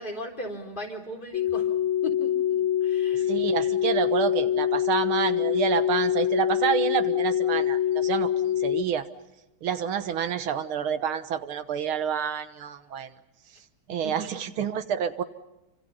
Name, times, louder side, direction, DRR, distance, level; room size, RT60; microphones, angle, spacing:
voice 1, 0.0-1.7 2.0-3.4 14.0-14.3, equal, 25° left, 3 dB, 4.0 m, -37 dB
sound 1, 1.3-8.8, left 10 dB, 75° left, 1.9 m, -25 dB
voice 2, 3.1-8.3 8.6-9.1 9.6-13.1 13.9-15.2, right 8 dB, 80° right, 10 dB, 2.1 m, -28 dB
29.0 x 26.0 x 5.5 m, 0.94 s
omnidirectional pair, 2.3 m